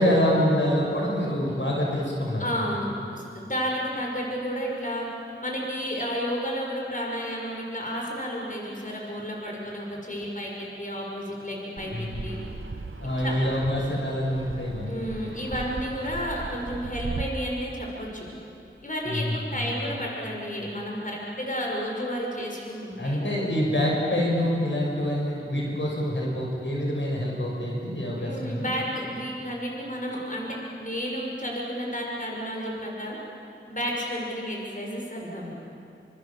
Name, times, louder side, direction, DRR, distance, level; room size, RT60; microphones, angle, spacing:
voice 1, 0.0-2.4 11.9-12.2 13.0-14.9 19.0-19.6 23.0-28.7, equal, 65° left, -3 dB, 6.7 m, -26 dB
voice 2, 2.4-5.1 5.4-12.4 13.2-13.4 14.9-18.3 18.8-23.3 28.2-33.2 33.7-35.7, equal, 40° left, -2 dB, 6.6 m, -32 dB
Fixed-wing aircraft airplane, 11.8-17.3, right 3 dB, 75° right, 1.4 m, -38 dB
29.0 x 27.0 x 7.4 m, 2.7 s
wide cardioid pair, 45°, 21 cm